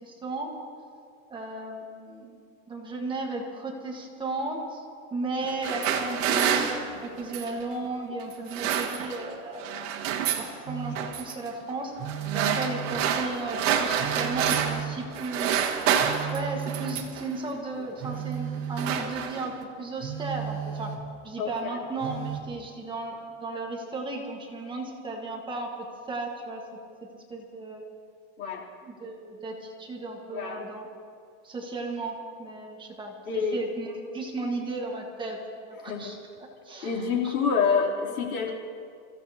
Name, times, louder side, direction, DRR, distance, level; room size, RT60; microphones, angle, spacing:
voice 1, 0.0-0.5 1.3-2.4 2.7-4.8 5.1-6.7 7.0-9.9 10.4-11.9 12.3-15.6 16.3-20.9 21.2-25.7 26.1-26.6 27.0-27.8 28.8-30.9 31.4-36.2 36.6-37.3 38.0-38.2, right 2 dB, 10° right, 0 dB, 1.4 m, -35 dB
sound 1, 5.4-7.6 8.3-9.3 9.6-10.5 11.0-11.4 12.1-14.9 15.1-17.3 18.0-18.3 18.5-19.6, right 8 dB, 60° right, 1.8 m, -28 dB
Telephone, 10.7-11.2 12.0-13.2 14.0-15.2 16.0-17.2 18.0-19.1 20.0-21.2 22.0-22.5, right 9 dB, 80° right, 1.9 m, -35 dB
voice 2, 21.4-21.8 28.4-28.6 30.3-30.6 33.3-33.6 35.8-36.1 36.8-38.5, left 6 dB, 85° left, -1 dB, 3.4 m, -27 dB
29.0 x 15.5 x 2.8 m, 2.3 s
supercardioid pair, 160°, 42 cm